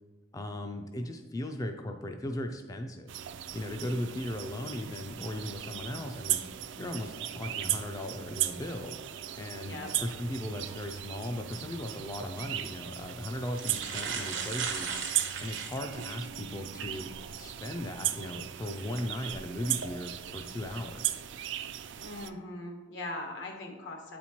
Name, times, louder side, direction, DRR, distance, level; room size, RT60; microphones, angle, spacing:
voice 1, 0.3-3.1 3.5-6.4 6.8-9.0 9.4-14.9 15.4-21.1, left 1 dB, 20° left, 4 dB, 0.3 m, -37 dB
sound 1, 3.1-22.3, right 12 dB, 70° right, 0.3 m, -37 dB
voice 2, 9.6-9.9 22.0-24.2, left 2 dB, 70° left, 2 dB, 1.1 m, -40 dB
sound 2, 12.1-12.3 13.1-13.2 13.5-16.3 16.8-16.9 18.8-19.0 19.6-19.9, right 6 dB, 90° right, 0.8 m, -36 dB
8.3 x 4.3 x 2.9 m, 1.3 s
head